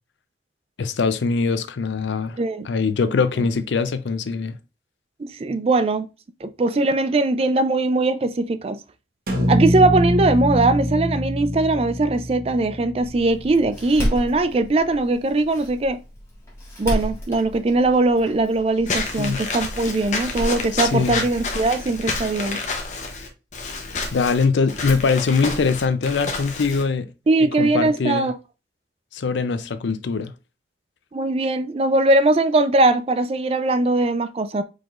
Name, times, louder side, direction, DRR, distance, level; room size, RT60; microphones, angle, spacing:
voice 1, 0.8-2.4 2.6-4.6 19.2-19.4 20.7-21.2 24.1-27.1 27.6-28.3 29.1-30.3, left 4 dB, 85° left, 0.5 m, -22 dB
voice 2, 2.4-2.7 5.2-6.1 6.4-8.8 9.5-16.0 16.8-22.6 27.3-28.3 31.1-34.6, right 2 dB, 35° right, 0.3 m, -20 dB
sound 1, 9.3-13.5, equal, 55° right, 0.9 m, -24 dB
Door, 13.0-22.0, equal, 15° left, 1.6 m, -33 dB
Walk footsteps / Squeak, 18.9-26.8, left 3 dB, 40° left, 0.8 m, -29 dB
4.8 x 3.8 x 2.4 m
head